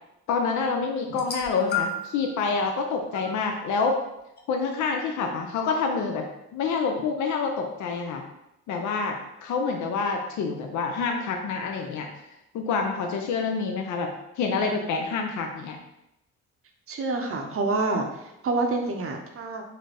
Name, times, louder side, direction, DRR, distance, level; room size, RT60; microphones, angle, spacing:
voice 1, 0.3-4.0 4.5-6.2 6.5-8.2 8.7-12.1 12.5-14.1 14.4-15.8, left 4 dB, 70° left, 3 dB, 0.5 m, -27 dB
sound 1, 1.1-2.3 3.1-3.3 4.4-4.5, left 5 dB, 35° left, 0.7 m, -31 dB
voice 2, 16.9-18.1 18.4-19.6, right 3 dB, 45° right, 3 dB, 0.7 m, -27 dB
3.9 x 2.6 x 3.3 m, 0.86 s
cardioid pair, 90°, 30 cm